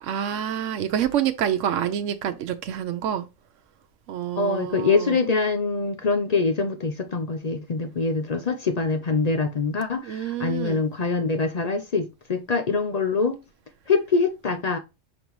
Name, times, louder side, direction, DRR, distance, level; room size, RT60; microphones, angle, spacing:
voice 1, 0.0-3.3 4.1-5.2 10.0-10.8, right 10 dB, 90° right, 1.0 m, -27 dB
voice 2, 4.4-13.4 13.9-14.8, left 4 dB, 45° left, 0.5 m, -24 dB
5.8 x 5.3 x 3.1 m
omnidirectional pair, 1.3 m